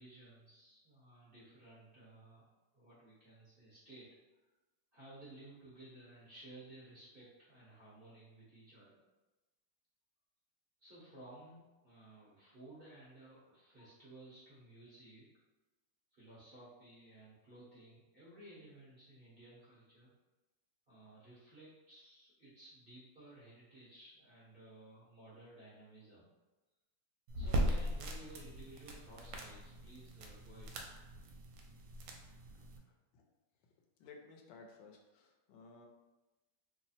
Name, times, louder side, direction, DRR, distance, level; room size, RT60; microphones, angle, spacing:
voice 1, 0.0-2.4 2.7-4.2 4.9-9.0 10.8-15.3 16.1-20.1 20.9-26.3 27.3-30.8, right 1 dB, 40° right, -9 dB, 0.9 m, -56 dB
sound 1, 27.3-32.8, equal, 80° right, 1.2 m, -39 dB
voice 2, 34.0-35.9, left 4 dB, 90° left, 2 dB, 1.3 m, -57 dB
3.2 x 2.0 x 4.1 m, 1.1 s
omnidirectional pair, 2.0 m